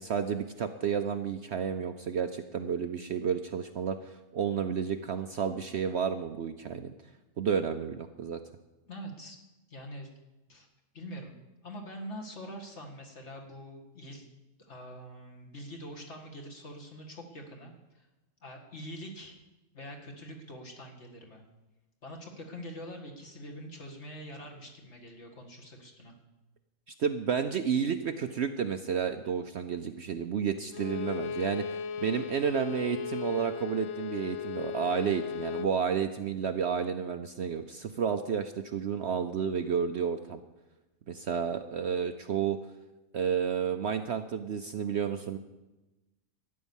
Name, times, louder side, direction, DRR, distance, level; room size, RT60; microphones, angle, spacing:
voice 1, 0.0-6.9 7.4-8.4 27.0-40.4 41.1-42.6 43.1-45.4, right 7 dB, 60° right, 8 dB, 0.8 m, -31 dB
voice 2, 8.9-9.4 9.7-10.1 10.5-10.7 10.9-11.3 11.6-14.3 14.7-18.1 18.4-19.4 19.7-21.4 22.0-26.1, equal, 50° left, 1 dB, 2.2 m, -44 dB
Bowed string instrument, 30.7-35.8, left 8 dB, 65° left, 0.9 m, -37 dB
13.0 x 9.6 x 7.2 m, 1.1 s
omnidirectional pair, 1.5 m